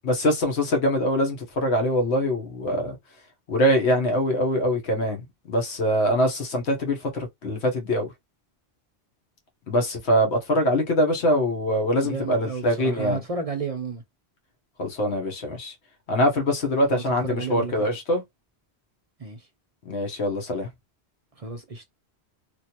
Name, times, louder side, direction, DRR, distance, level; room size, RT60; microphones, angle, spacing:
voice 1, 0.0-3.0 3.5-8.1 9.7-13.2 14.8-15.7 16.1-18.2 19.8-20.7, equal, 80° left, 1.3 m, -23 dB
voice 2, 12.0-14.0 16.9-18.0 19.2-19.5 21.4-21.8, right 4 dB, 40° right, 0.6 m, -32 dB
3.1 x 2.6 x 2.9 m
omnidirectional pair, 1.1 m